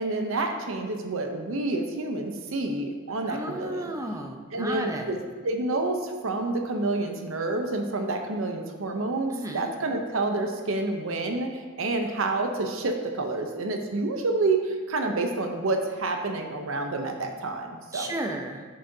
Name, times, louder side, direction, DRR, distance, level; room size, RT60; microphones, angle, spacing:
voice 1, 0.0-3.9 4.5-5.2 5.4-18.1, right 2 dB, 75° right, 4 dB, 0.7 m, -28 dB
voice 2, 3.3-5.2 9.3-9.7 17.9-18.6, right 1 dB, 15° right, 3 dB, 0.6 m, -33 dB
9.3 x 6.6 x 2.7 m, 1.5 s
head